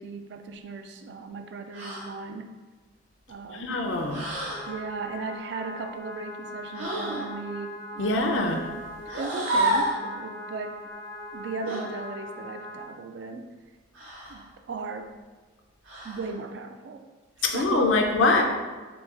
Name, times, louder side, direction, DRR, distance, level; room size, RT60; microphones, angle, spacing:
voice 1, 0.0-2.5 3.3-3.9 4.6-8.0 9.1-10.8 11.3-13.5 14.3-15.1 16.0-17.0 17.5-18.0, right 4 dB, 65° right, 6 dB, 0.3 m, -37 dB
sound 1, 1.7-2.1 4.1-4.7 6.7-7.3 9.1-10.0 11.7-11.9 13.9-14.4 15.8-16.3, right 1 dB, 85° right, 0.9 m, -29 dB
voice 2, 3.5-4.2 8.0-8.6 17.4-18.4, left 2 dB, 80° left, 2 dB, 0.5 m, -23 dB
sound 2, 4.5-12.9, left 1 dB, 15° left, 0.4 m, -40 dB
3.9 x 2.3 x 3.6 m, 1.3 s
head